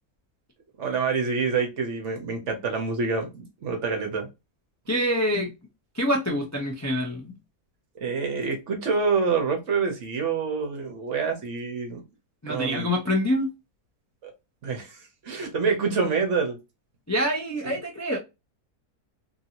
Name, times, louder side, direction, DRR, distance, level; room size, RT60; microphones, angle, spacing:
voice 1, 0.8-4.3 8.0-12.0 12.5-12.9 14.2-14.3 14.6-16.6 17.6-17.7, right 5 dB, 55° right, 1.0 m, -27 dB
voice 2, 4.9-5.5 5.9-7.4 12.4-13.5 17.1-18.2, equal, 25° left, 0.3 m, -26 dB
3.0 x 2.7 x 2.8 m
omnidirectional pair, 1.6 m